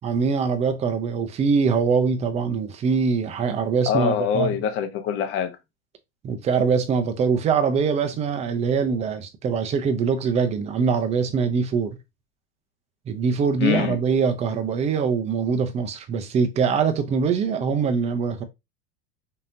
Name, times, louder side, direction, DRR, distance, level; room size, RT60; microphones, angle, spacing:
voice 1, 0.0-4.5 6.2-12.0 13.1-18.4, right 5 dB, 20° right, 0.5 m, -23 dB
voice 2, 3.9-5.5 13.6-14.0, left 9 dB, 35° left, 0.9 m, -24 dB
5.3 x 2.8 x 2.6 m
supercardioid pair, 150°, 36 cm